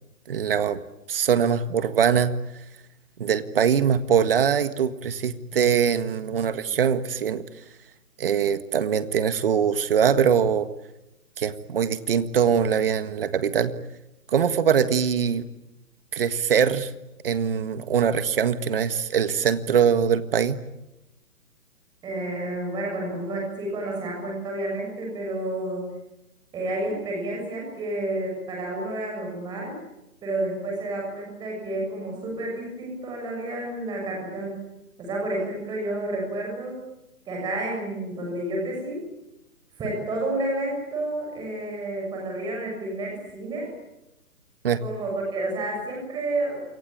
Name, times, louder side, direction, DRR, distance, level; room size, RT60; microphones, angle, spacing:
voice 1, 0.3-0.8 1.1-2.3 3.2-7.4 8.2-10.7 11.4-13.7 14.3-15.5 16.1-16.9 17.2-20.6 44.6-44.8, right 7 dB, 35° right, 12 dB, 1.7 m, -22 dB
voice 2, 22.0-25.9 26.5-29.8 30.2-34.7 35.0-36.8 37.2-39.1 39.8-43.7 44.8-46.6, right 1 dB, 10° right, 0 dB, 6.8 m, -30 dB
28.5 x 24.0 x 8.8 m, 0.92 s
hypercardioid pair, 165°, 45 cm